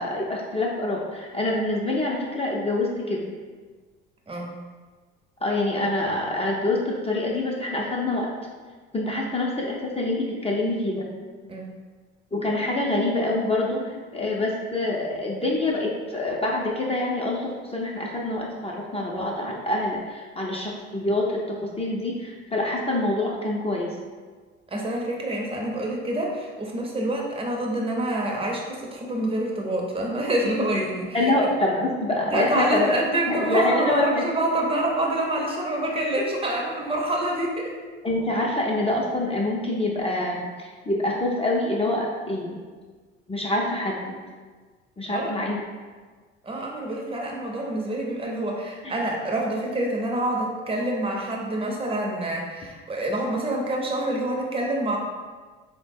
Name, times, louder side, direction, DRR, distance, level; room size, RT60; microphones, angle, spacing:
voice 1, 0.0-3.3 5.4-8.3 8.9-11.1 12.3-24.0 31.1-32.9 33.3-34.2 38.0-42.6 43.3-44.2 45.0-45.6 48.8-48.9, left 2 dB, 20° left, -3 dB, 0.6 m, -26 dB
voice 2, 24.7-31.3 32.3-37.7 45.1-45.3 46.4-55.0, right 1 dB, 15° right, -1 dB, 0.7 m, -27 dB
3.5 x 2.2 x 3.4 m, 1.4 s
hypercardioid pair, 55°, 33 cm